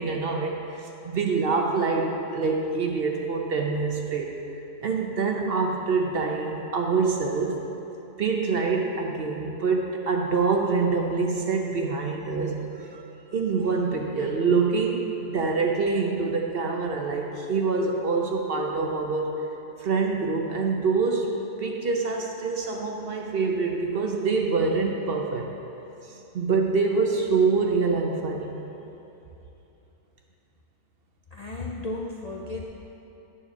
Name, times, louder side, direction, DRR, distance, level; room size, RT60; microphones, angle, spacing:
voice 1, 0.0-7.6 8.2-13.0 13.3-19.4 19.8-25.5 26.3-28.6, right 4 dB, 55° right, 1 dB, 0.8 m, -25 dB
voice 2, 31.3-32.6, left 2 dB, 45° left, -2 dB, 0.5 m, -34 dB
9.3 x 4.3 x 7.1 m, 2.9 s
omnidirectional pair, 1.3 m